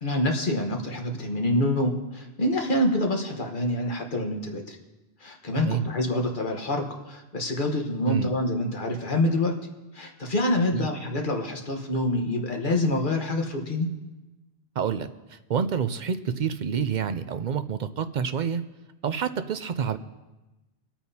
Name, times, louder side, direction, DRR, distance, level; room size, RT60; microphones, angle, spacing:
voice 1, 0.0-4.8 5.2-9.5 9.9-13.9, left 1 dB, 50° left, 2 dB, 1.4 m, -26 dB
voice 2, 5.5-5.9 8.1-8.3 10.7-10.9 14.8-18.6 19.0-20.0, right 7 dB, 55° right, 10 dB, 0.6 m, -28 dB
25.0 x 8.9 x 2.8 m, 1.1 s
omnidirectional pair, 1.1 m